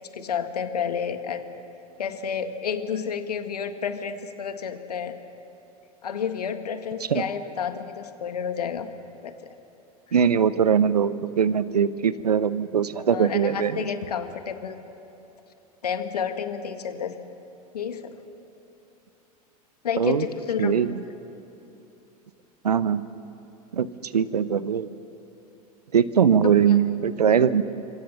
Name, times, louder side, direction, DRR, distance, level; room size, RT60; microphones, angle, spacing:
voice 1, 0.0-1.5 2.0-5.2 6.0-8.9 9.2-9.5 13.1-14.8 15.8-17.2 17.7-18.2 19.8-20.9 26.4-26.8 27.3-27.5, left 7 dB, 80° left, 8 dB, 1.7 m, -30 dB
voice 2, 10.1-13.8 20.0-20.3 20.6-21.0 22.6-23.0 23.7-24.9 25.9-27.6, right 7 dB, 85° right, 16 dB, 0.8 m, -21 dB
25.5 x 24.5 x 7.0 m, 2.9 s
figure-of-eight pair, 85°, 20 cm